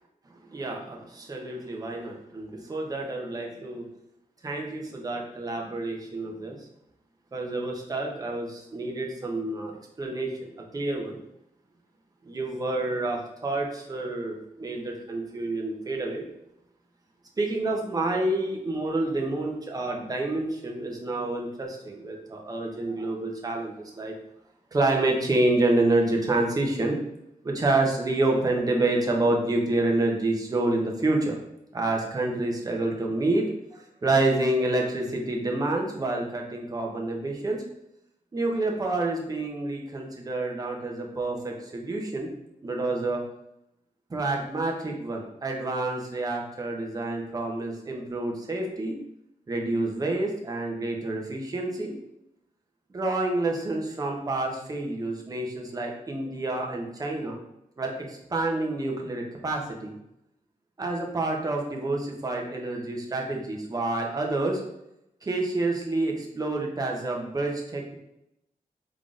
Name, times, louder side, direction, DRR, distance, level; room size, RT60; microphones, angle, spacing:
voice 1, 0.5-3.9 4.4-6.6 7.3-9.7 10.0-11.2 12.3-16.2 17.4-24.1 24.7-27.0 27.4-31.4 31.7-33.5 33.7-37.6 38.3-42.3 42.6-43.2 44.1-48.9 49.5-51.9 52.9-57.4 57.8-59.9 60.8-64.6 65.2-68.0, right 2 dB, 25° right, 0 dB, 0.7 m, -28 dB
3.7 x 3.6 x 2.4 m, 0.84 s
wide cardioid pair, 140°, 14 cm